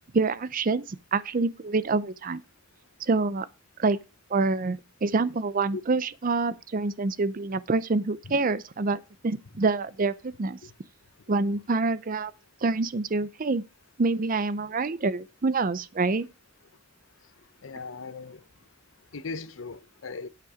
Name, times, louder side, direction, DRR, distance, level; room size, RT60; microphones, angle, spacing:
voice 1, 0.1-2.4 3.0-3.5 3.8-4.0 4.3-10.6 11.3-12.3 12.6-13.6 14.0-16.3, right 3 dB, 45° right, 0.5 m, -26 dB
voice 2, 17.6-18.4 19.1-20.3, left 4 dB, 85° left, 0.8 m, -38 dB
9.0 x 8.5 x 4.9 m
head